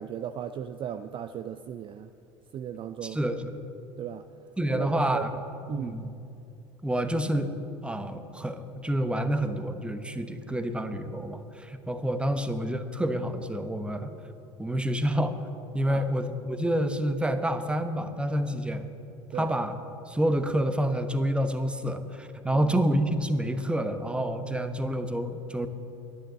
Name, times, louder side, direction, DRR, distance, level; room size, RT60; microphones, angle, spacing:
voice 1, 0.0-2.1 2.5-3.2 4.0-4.3 4.7-5.4 5.7-6.0 15.9-16.1 19.3-19.5 22.5-22.8, right 9 dB, 35° right, 10 dB, 0.4 m, -36 dB
voice 2, 3.0-3.5 4.6-5.3 5.7-6.1 6.8-7.5 7.8-14.1 14.6-15.4 15.7-18.9 19.3-19.8 20.1-25.7, right 1 dB, 5° right, 9 dB, 0.9 m, -28 dB
11.5 x 10.0 x 7.4 m, 2.7 s
figure-of-eight pair, 65°, 16 cm